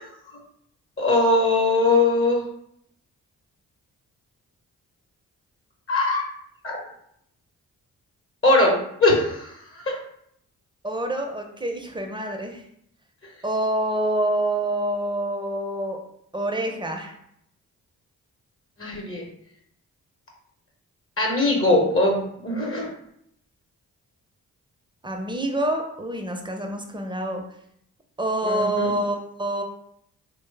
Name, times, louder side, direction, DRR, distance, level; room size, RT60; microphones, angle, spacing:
voice 1, 1.0-2.4 5.9-6.2 6.6-6.8 8.4-10.0 18.8-19.2 21.2-22.9 28.4-29.0, left 2 dB, 35° left, -1 dB, 0.9 m, -21 dB
voice 2, 10.8-12.6 13.4-16.0 16.3-17.1 25.0-27.4 28.2-29.6, right 1 dB, 10° right, 3 dB, 0.6 m, -26 dB
3.1 x 2.2 x 3.3 m, 0.72 s
supercardioid pair, 40°, 38 cm